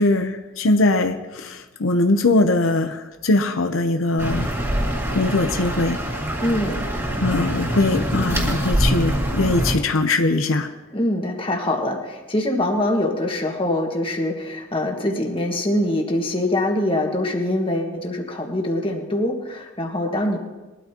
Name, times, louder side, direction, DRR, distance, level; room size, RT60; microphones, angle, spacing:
voice 1, 0.0-4.5 5.1-6.0 7.2-10.7, left 2 dB, 85° left, 6 dB, 0.8 m, -21 dB
sound 1, 4.2-9.7, right 1 dB, 15° right, 1.9 m, -24 dB
voice 2, 6.4-6.8 10.9-20.4, left 1 dB, 25° left, 2 dB, 1.6 m, -24 dB
21.0 x 12.5 x 2.9 m, 1.2 s
head